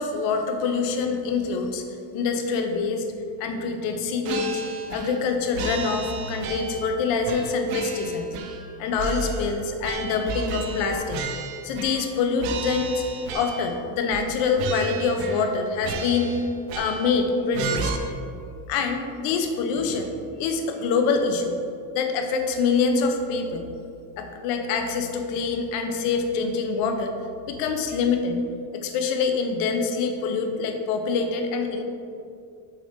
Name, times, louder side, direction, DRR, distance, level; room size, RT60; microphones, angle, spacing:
voice 1, 0.0-1.8 2.1-3.1 3.4-4.6 4.9-8.3 8.8-11.3 11.6-13.0 13.3-16.4 16.7-17.9 18.7-20.1 20.4-21.6 21.9-23.6 24.2-27.1 27.5-28.4 28.7-31.8, left 4 dB, 90° left, 5 dB, 0.9 m, -25 dB
sound 1, 4.2-5.3 5.5-6.9 7.2-8.7 9.0-12.1 12.4-13.8 14.1-14.3 14.6-15.5 15.8-17.2 17.5-18.0, right 4 dB, 85° right, 0.9 m, -33 dB
6.8 x 5.9 x 3.7 m, 2.5 s
cardioid pair, 160°, 40 cm